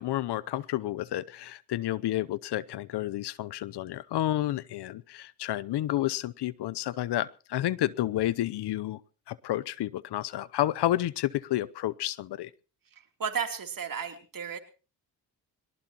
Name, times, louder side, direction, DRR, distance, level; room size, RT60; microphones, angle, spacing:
voice 1, 0.0-9.0 9.3-12.5, left 14 dB, 70° left, 19 dB, 0.8 m, -30 dB
voice 2, 13.2-14.6, right 6 dB, 50° right, 5 dB, 3.2 m, -33 dB
22.5 x 19.0 x 3.0 m, 0.35 s
supercardioid pair, 60°, 42 cm